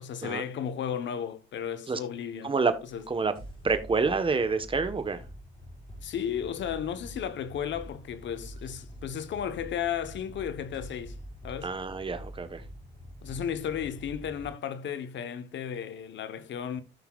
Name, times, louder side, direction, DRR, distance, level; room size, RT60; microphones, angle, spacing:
voice 1, 0.0-2.6 2.9-3.0 6.0-11.2 11.4-11.7 13.2-16.8, left 8 dB, 65° left, 1.1 m, -34 dB
sound 1, 2.7-14.5, equal, 30° left, 4.0 m, -46 dB
voice 2, 3.6-5.2 11.6-12.6, right 4 dB, 25° right, 1.2 m, -27 dB
14.5 x 5.7 x 2.4 m
cardioid pair, 90°, 20 cm